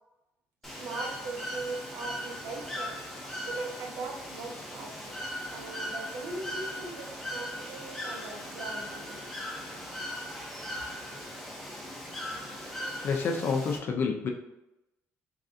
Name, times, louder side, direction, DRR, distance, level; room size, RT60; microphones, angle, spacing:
Bird / Water, 0.6-13.8, equal, 5° left, 0.6 m, -39 dB
voice 1, 0.6-3.0 3.4-5.2 5.5-9.2, right 3 dB, 80° right, 1 dB, 0.8 m, -40 dB
voice 2, 13.0-14.3, left 5 dB, 45° left, 2 dB, 0.4 m, -28 dB
3.7 x 3.2 x 2.6 m, 0.92 s
cardioid pair, 160°, 5 cm